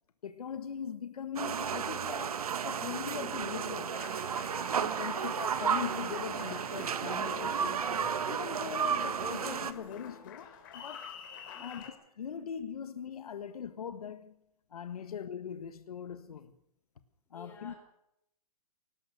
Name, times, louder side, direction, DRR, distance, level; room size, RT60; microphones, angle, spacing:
voice 1, 0.2-4.0 4.7-7.9 8.2-11.1 11.6-14.4 14.7-16.5 17.3-17.7, left 7 dB, 70° left, 1.5 m, -41 dB
sound 1, 1.4-9.7, right 7 dB, 70° right, 1.5 m, -33 dB
Applause, 3.9-11.9, left 8 dB, 35° left, 3.5 m, -48 dB
voice 2, 4.8-5.3 11.5-11.7 15.0-15.1 17.3-17.8, left 4 dB, 10° left, 4.5 m, -54 dB
21.5 x 18.5 x 6.5 m
hypercardioid pair, 170°, 20 cm